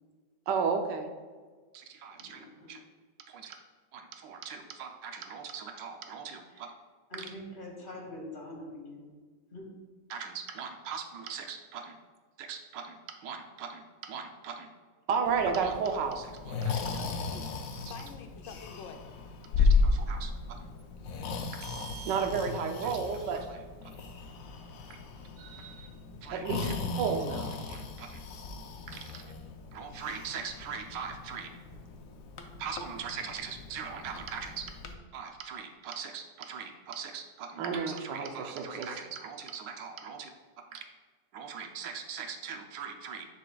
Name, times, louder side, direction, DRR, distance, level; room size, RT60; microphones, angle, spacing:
voice 1, 0.5-1.1 1.7-2.8 3.3-3.6 3.9-6.7 7.1-7.3 10.1-11.8 12.4-13.0 13.2-14.7 15.1-17.0 19.6-20.6 21.6-23.6 25.4-25.9 26.2-26.7 27.0-28.2 28.9-29.2 29.7-31.5 32.6-34.5 35.1-40.3 40.7-40.8 41.3-43.3, right 6 dB, 80° right, 5 dB, 1.3 m, -36 dB
voice 2, 2.2-2.8 6.5-6.7 7.1-9.2 9.5-9.7, left 1 dB, 30° left, -2 dB, 1.4 m, -44 dB
Breathing, 15.3-34.9, left 4 dB, 65° left, 0.9 m, -35 dB
voice 3, 16.7-17.5 17.9-19.0 42.6-42.9, left 6 dB, 80° left, 6 dB, 1.3 m, -47 dB
9.9 x 5.0 x 2.3 m, 1.5 s
omnidirectional pair, 1.9 m